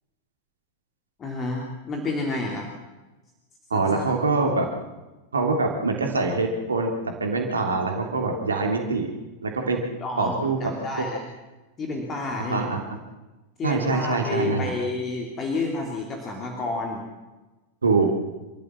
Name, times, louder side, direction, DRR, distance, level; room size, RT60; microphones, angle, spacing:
voice 1, 1.2-2.7 3.7-4.1 10.0-11.2 11.8-12.7 13.6-17.0, left 3 dB, 25° left, 1 dB, 3.5 m, -30 dB
voice 2, 3.7-4.7 5.3-9.1 9.4-9.8 10.2-10.6 11.0-11.1 12.4-12.8 13.6-14.7 17.8-18.1, right 3 dB, 75° right, 2 dB, 3.3 m, -24 dB
28.0 x 14.5 x 7.6 m, 1.1 s
figure-of-eight pair, 90°, 0 cm